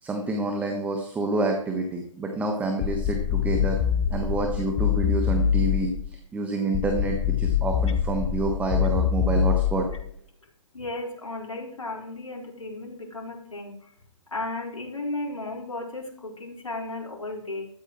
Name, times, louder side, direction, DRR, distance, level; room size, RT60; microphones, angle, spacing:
voice 1, 0.0-3.8 4.1-9.9, right 3 dB, 10° right, 3 dB, 1.3 m, -28 dB
sound 1, 2.8-6.1 6.7-10.1, left 9 dB, 20° left, 0.8 m, -25 dB
voice 2, 10.7-13.9 14.3-17.7, left 2 dB, 75° left, -1 dB, 4.5 m, -35 dB
16.0 x 13.5 x 3.1 m, 0.65 s
figure-of-eight pair, 130°, 17 cm